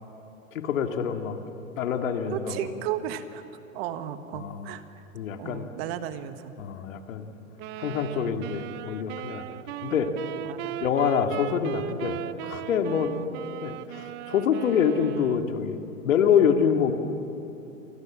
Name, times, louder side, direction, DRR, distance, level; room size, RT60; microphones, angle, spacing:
voice 1, 0.6-1.4 1.8-2.7 4.3-4.6 5.1-5.7 6.6-7.2 7.8-9.4 9.8-10.1 10.8-13.1 13.6-16.9, left 7 dB, 70° left, 5 dB, 2.5 m, -26 dB
voice 2, 2.3-3.4 3.7-5.0 5.4-6.5 10.4-10.8, right 10 dB, 45° right, 9 dB, 1.6 m, -34 dB
sound 1, 7.6-15.6, right 12 dB, 25° right, 0.6 m, -37 dB
28.5 x 24.0 x 7.5 m, 2.8 s
hypercardioid pair, 130°, 41 cm